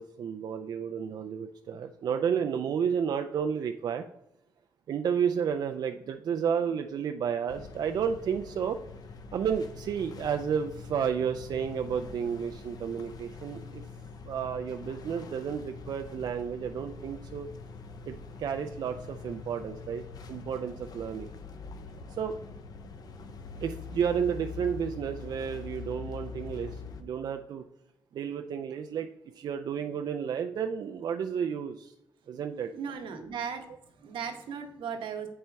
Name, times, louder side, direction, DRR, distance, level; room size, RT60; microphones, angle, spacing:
voice 1, 0.0-4.1 4.9-8.8 9.3-13.8 14.2-17.5 18.1-20.0 20.3-21.3 22.2-22.3 23.6-27.6 28.1-29.1 29.4-31.9 32.3-32.7, right 7 dB, 55° right, 6 dB, 0.4 m, -31 dB
sound 1, 7.5-27.0, left 5 dB, 50° left, 0.6 m, -44 dB
voice 2, 32.7-35.3, right 6 dB, 80° right, 5 dB, 1.0 m, -37 dB
8.7 x 4.3 x 3.4 m, 0.84 s
cardioid pair, 135°, 8 cm